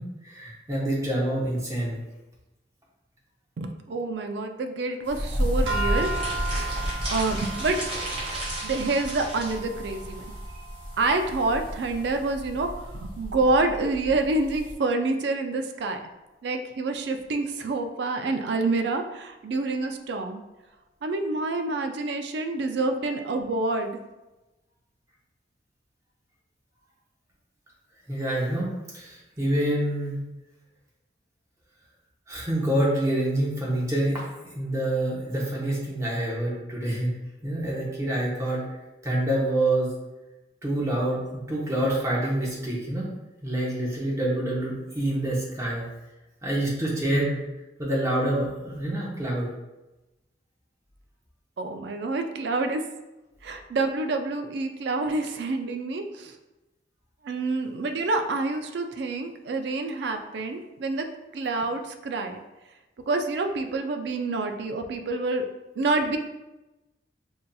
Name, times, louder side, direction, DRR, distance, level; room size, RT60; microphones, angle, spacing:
voice 1, 0.0-2.0 8.2-8.7 10.5-10.6 28.1-28.7 28.9-30.2 32.3-34.3 34.5-37.2 37.4-38.7 39.0-39.9 40.6-43.1 43.4-45.9 46.4-47.4 47.8-49.5, right 1 dB, 15° right, -5 dB, 0.8 m, -27 dB
voice 2, 3.6-6.6 7.1-7.8 8.6-10.2 11.0-16.0 16.4-20.4 21.0-24.0 51.6-52.8 53.4-56.4 57.2-61.1 61.3-62.4 63.1-65.5 65.8-66.2, right 3 dB, 65° right, 6 dB, 0.4 m, -27 dB
sound 1, 5.0-14.7, equal, 30° left, 0.5 m, -33 dB
sound 2, 5.7-12.0, right 3 dB, 90° right, 0.8 m, -36 dB
sound 3, 5.9-9.6, right 1 dB, 30° right, 1.4 m, -35 dB
5.4 x 2.6 x 2.3 m, 1.0 s
head